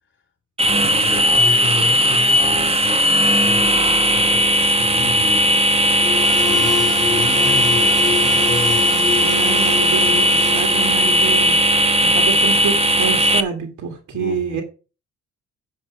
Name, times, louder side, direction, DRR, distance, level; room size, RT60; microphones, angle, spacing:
voice 1, 0.6-4.4 4.7-5.6 6.4-9.2 14.1-14.6, left 4 dB, 40° left, 3.0 m, -31 dB
sound 1, 0.6-13.4, equal, 20° right, 1.0 m, -17 dB
sound 2, 5.8-11.7, left 6 dB, 10° left, 4.0 m, -28 dB
voice 2, 9.2-11.6 12.0-14.6, right 7 dB, 75° right, 2.0 m, -27 dB
8.3 x 6.0 x 5.8 m
cardioid pair, 90°, 30 cm